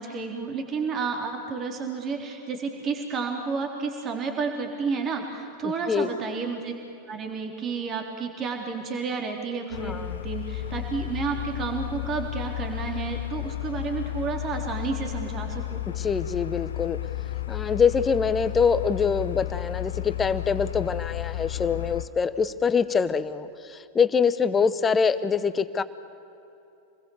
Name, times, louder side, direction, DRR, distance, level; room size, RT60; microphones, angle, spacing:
voice 1, 0.0-6.7 7.1-15.8, right 5 dB, 30° right, 3 dB, 3.5 m, -31 dB
voice 2, 5.6-6.1 9.8-10.2 16.0-17.0 17.5-25.8, left 6 dB, 20° left, 14 dB, 0.9 m, -24 dB
sound 1, 9.7-22.1, left 15 dB, 65° left, 1.0 m, -33 dB
28.0 x 20.5 x 7.2 m, 2.9 s
figure-of-eight pair, 90°, 0 cm